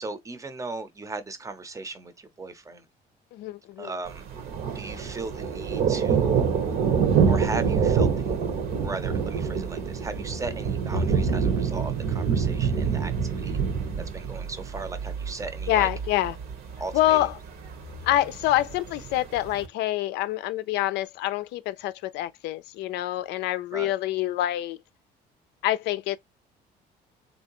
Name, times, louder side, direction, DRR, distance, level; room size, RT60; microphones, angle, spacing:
voice 1, 0.0-2.8 3.8-4.3 4.7-6.4 7.3-8.3 8.8-13.6 14.1-15.9 16.8-17.3 23.7-23.9, right 3 dB, 20° right, 0.7 m, -37 dB
voice 2, 3.3-3.9 15.7-16.4 16.9-17.3 18.0-24.8 25.6-26.2, left 14 dB, 85° left, 0.4 m, -26 dB
Thunder, 4.1-19.7, right 6 dB, 65° right, 1.0 m, -26 dB
3.2 x 2.7 x 2.9 m
cardioid pair, 110°, 17 cm